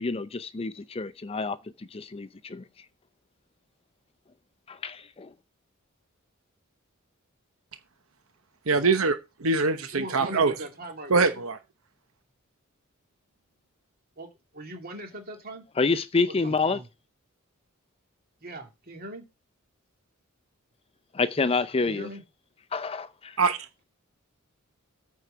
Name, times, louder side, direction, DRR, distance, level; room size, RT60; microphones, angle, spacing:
voice 1, 0.0-2.6 4.7-5.3 15.8-16.8 21.1-22.1 22.7-23.4, left 4 dB, 25° left, 0.5 m, -28 dB
voice 2, 8.7-9.1 9.4-10.5 11.1-11.6 23.4-23.6, right 4 dB, 75° right, 1.0 m, -23 dB
voice 3, 9.9-11.3 14.2-14.3 14.5-15.6 16.4-16.8 18.4-19.2 21.8-22.2, right 1 dB, 45° right, 2.7 m, -39 dB
9.3 x 4.7 x 6.9 m
head